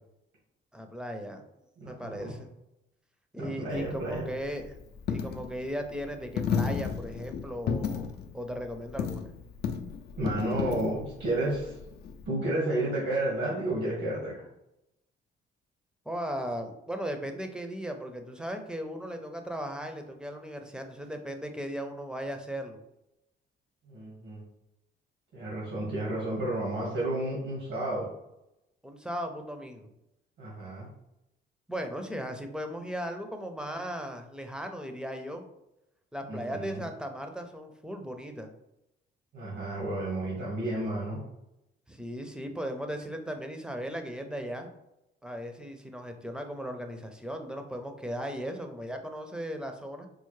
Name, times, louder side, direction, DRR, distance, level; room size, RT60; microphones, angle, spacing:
voice 1, 0.7-1.4 1.9-2.5 3.3-4.8 5.1-9.3 16.1-22.8 28.8-29.9 31.7-35.5 36.1-38.5 41.9-44.7 45.2-50.1, equal, 5° right, 5 dB, 0.5 m, -37 dB
voice 2, 1.8-2.4 3.4-4.3 10.2-11.8 12.2-14.3 23.8-24.4 25.3-28.1 30.4-30.9 36.3-36.8 39.3-41.2, right 1 dB, 90° right, -6 dB, 1.4 m, -31 dB
Coin (dropping), 3.7-12.3, left 6 dB, 55° left, 0.4 m, -34 dB
4.4 x 2.0 x 3.1 m, 0.86 s
cardioid pair, 90°, 20 cm